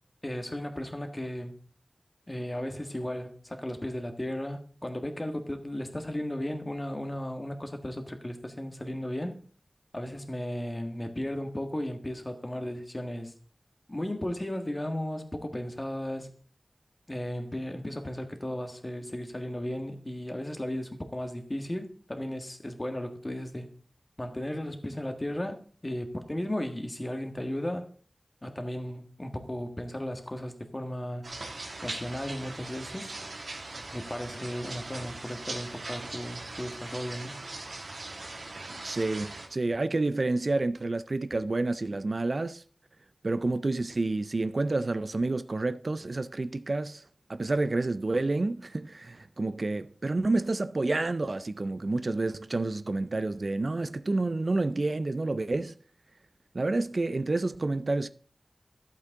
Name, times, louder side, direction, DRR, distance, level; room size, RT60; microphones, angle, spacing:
voice 1, 0.2-1.5 2.3-9.4 9.9-13.3 13.9-16.3 17.1-23.7 24.2-27.9 28.4-31.2 31.8-33.1 33.9-37.4, left 1 dB, 25° left, 1.5 m, -35 dB
sound 1, 31.2-39.5, right 2 dB, 90° right, 2.0 m, -40 dB
voice 2, 38.8-42.6 43.2-47.0 47.3-55.7 56.5-58.1, right 2 dB, 55° right, 0.4 m, -29 dB
11.5 x 8.2 x 3.7 m
wide cardioid pair, 70°, 0 cm